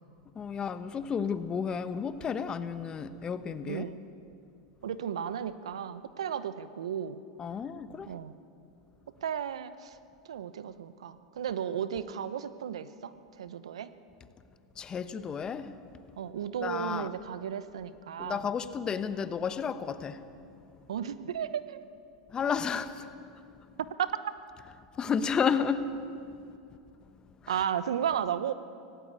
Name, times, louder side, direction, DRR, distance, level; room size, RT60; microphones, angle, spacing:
voice 1, 0.3-3.9 7.4-8.1 14.8-15.7 16.6-17.1 18.2-20.2 22.3-23.1 25.0-25.9, left 6 dB, 25° left, 12 dB, 1.1 m, -32 dB
voice 2, 3.6-4.0 4.8-7.2 8.1-8.4 9.2-10.0 10.2-13.9 16.2-18.5 20.9-21.8 24.0-24.1 27.5-28.5, right 9 dB, 80° right, 14 dB, 0.9 m, -34 dB
18.0 x 17.5 x 8.4 m, 2.6 s
hypercardioid pair, 100°, 3 cm